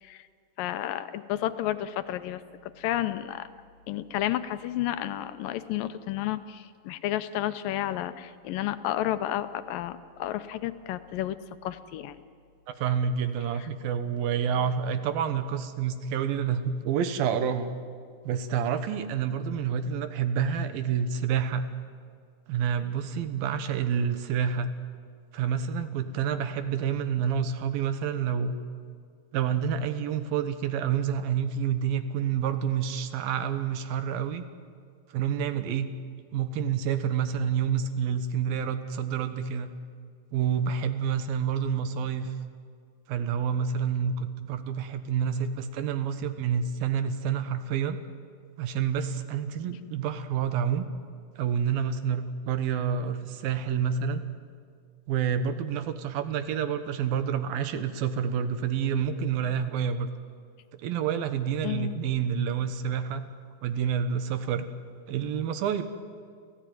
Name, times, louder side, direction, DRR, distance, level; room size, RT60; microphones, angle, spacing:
voice 1, 0.6-3.5 3.9-11.4 11.6-12.2 13.6-13.7 61.6-61.9, left 13 dB, 80° left, 11 dB, 2.4 m, -31 dB
voice 2, 12.7-17.7 18.2-21.7 22.5-24.7 25.3-28.6 29.3-34.5 35.1-35.9 36.3-39.7 40.3-42.3 43.1-48.0 48.6-50.9 51.4-54.2 55.1-60.1 60.8-63.2 63.6-64.7 65.1-65.8, right 7 dB, 85° right, 10 dB, 3.0 m, -28 dB
29.0 x 15.5 x 9.3 m, 2.1 s
omnidirectional pair, 4.1 m